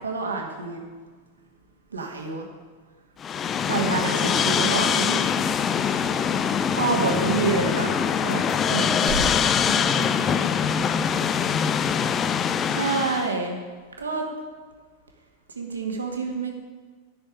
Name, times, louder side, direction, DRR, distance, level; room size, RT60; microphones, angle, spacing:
voice 1, 0.0-0.8 1.9-2.5 3.7-5.3 6.7-7.9 8.2-9.2 12.7-13.6 14.0-14.2 15.6-16.5, right 4 dB, 75° right, 2 dB, 1.9 m, -27 dB
sound 1, 3.2-13.3, left 7 dB, 25° left, 0.5 m, -23 dB
voice 2, 9.6-11.8, right 1 dB, 15° right, -1 dB, 1.7 m, -39 dB
11.5 x 6.4 x 9.0 m, 1.5 s
figure-of-eight pair, 90°, 0 cm